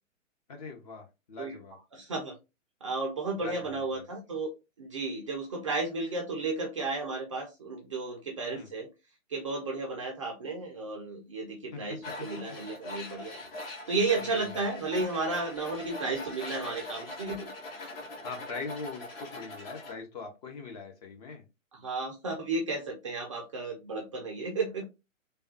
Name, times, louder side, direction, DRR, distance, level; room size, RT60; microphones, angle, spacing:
voice 1, 0.5-1.8 3.4-4.0 8.5-8.7 11.7-11.8 12.5-12.6 14.2-14.5 18.2-21.4, left 4 dB, 30° left, 3 dB, 0.7 m, -42 dB
voice 2, 1.9-2.3 2.8-4.5 4.8-8.9 9.3-13.4 13.9-17.9 21.7-24.8, right 3 dB, 25° right, 0 dB, 0.4 m, -33 dB
Tools, 12.0-20.0, left 2 dB, 45° left, 1.3 m, -42 dB
3.3 x 2.2 x 2.7 m, 0.26 s
hypercardioid pair, 135°, 40 cm